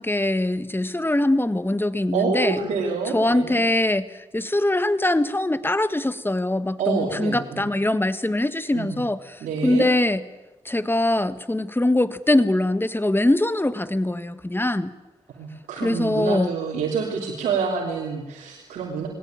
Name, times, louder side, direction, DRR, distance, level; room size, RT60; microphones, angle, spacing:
voice 1, 0.0-2.6 3.1-10.2 10.6-14.9 15.8-16.5, left 1 dB, 15° left, 12 dB, 1.7 m, -22 dB
voice 2, 2.1-3.6 6.8-7.7 8.7-9.0 9.4-9.9 15.4-19.1, right 5 dB, 90° right, -3 dB, 3.0 m, -27 dB
21.5 x 17.5 x 8.9 m, 1.1 s
supercardioid pair, 40°, 13 cm